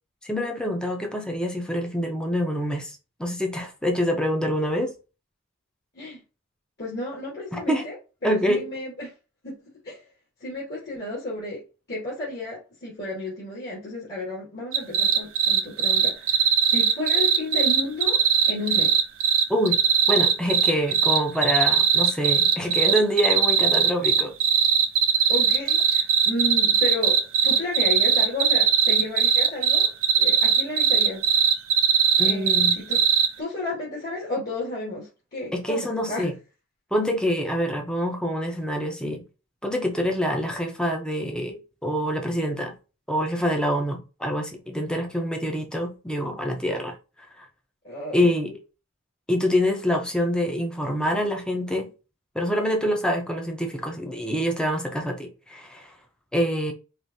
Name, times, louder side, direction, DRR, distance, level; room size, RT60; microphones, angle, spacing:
voice 1, 0.2-4.9 7.5-7.8 8.2-8.7 19.5-19.8 20.1-24.3 32.2-32.8 35.5-36.3 36.9-39.2 39.6-42.7 43.1-47.0 47.4-47.5 48.1-48.6 49.3-51.9 52.3-55.9 56.3-56.7, equal, 5° left, 0.7 m, -26 dB
voice 2, 6.8-8.0 8.2-9.1 9.4-9.5 9.8-10.1 10.4-11.6 11.9-19.0 25.3-31.2 32.2-33.0 33.4-36.3 47.8-48.3, left 2 dB, 50° left, 2.1 m, -32 dB
sound 1, 14.7-33.3, right 7 dB, 70° right, 0.7 m, -19 dB
4.9 x 2.7 x 2.7 m
head